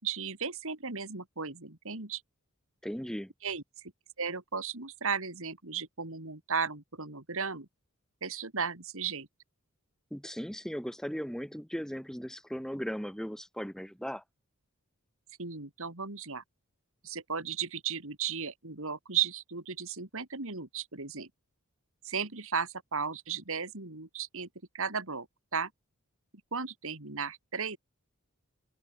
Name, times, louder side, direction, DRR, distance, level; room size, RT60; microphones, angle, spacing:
voice 1, 0.0-2.2 3.4-3.9 4.2-7.7 8.2-9.3 15.4-16.4 17.0-21.3 22.0-24.5 24.7-25.3 25.5-25.7 26.5-27.8, right 6 dB, 65° right, 3.2 m, -35 dB
voice 2, 2.8-3.3 10.1-14.2, equal, 5° left, 2.2 m, -37 dB
open air
head